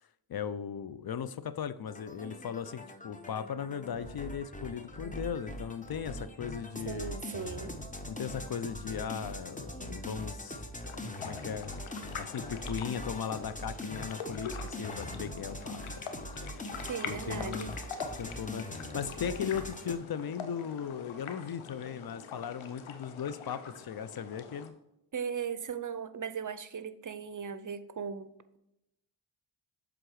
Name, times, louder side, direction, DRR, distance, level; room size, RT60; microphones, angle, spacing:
voice 1, 0.3-7.2 8.1-11.8 12.2-16.0 17.1-17.7 18.2-24.7, left 8 dB, 50° left, 14 dB, 0.6 m, -37 dB
sound 1, 1.9-20.0, left 1 dB, 15° left, 1.1 m, -42 dB
voice 2, 6.9-7.8 16.9-17.7 25.1-28.3, right 6 dB, 40° right, 13 dB, 0.7 m, -37 dB
sound 2, 10.8-24.7, left 6 dB, 85° left, 0.9 m, -44 dB
7.6 x 3.8 x 4.8 m, 0.85 s
supercardioid pair, 40°, 47 cm